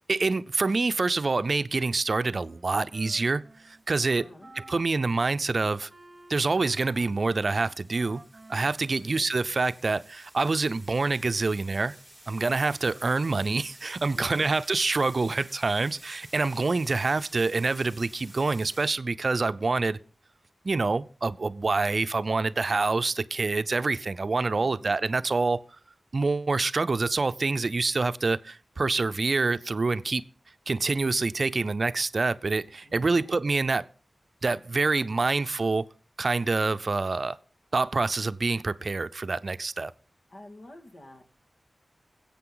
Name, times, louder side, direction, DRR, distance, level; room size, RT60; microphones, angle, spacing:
voice 1, 0.1-4.2 4.7-5.9 6.3-8.2 8.5-12.0 12.3-20.0 20.6-25.6 26.1-30.2 30.7-33.9 34.4-35.8 36.2-37.4 37.7-39.9, right 3 dB, 55° right, 0.5 m, -26 dB
Wind instrument woodwind instrument, 2.4-9.9, right 2 dB, 30° right, 1.4 m, -54 dB
sound 1, 3.5-3.8 6.0-18.9, right 1 dB, 5° left, 5.1 m, -53 dB
voice 2, 4.1-4.5 9.0-9.3 14.1-14.5 24.6-24.9 32.8-33.3 40.3-41.2, left 1 dB, 65° left, 2.1 m, -48 dB
21.0 x 8.4 x 3.9 m
wide cardioid pair, 75°, 0 cm